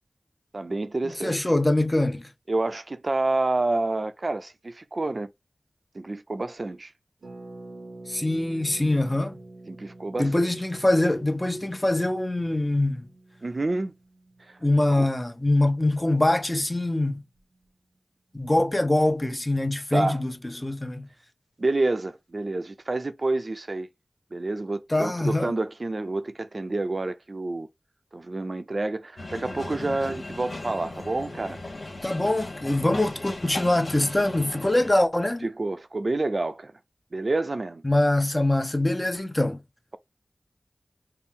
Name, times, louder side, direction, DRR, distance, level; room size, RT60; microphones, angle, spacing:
voice 1, 0.5-1.5 2.5-5.3 5.9-6.9 9.7-10.5 13.4-13.9 14.9-15.1 19.9-20.2 21.6-23.9 24.3-27.7 28.1-31.6 35.4-36.7 37.1-37.8, right 2 dB, 55° right, 0.5 m, -28 dB
voice 2, 1.2-2.3 8.1-9.3 10.2-13.0 14.6-17.2 18.3-21.1 24.9-25.5 32.0-35.5 37.8-39.6, left 1 dB, 25° left, 0.7 m, -23 dB
Harp, 7.2-16.8 17.1-17.2 17.3-17.7, right 2 dB, 85° right, 0.7 m, -47 dB
sound 1, 29.2-34.9, left 2 dB, 80° left, 1.1 m, -37 dB
4.3 x 2.0 x 3.5 m
wide cardioid pair, 55°, 0 cm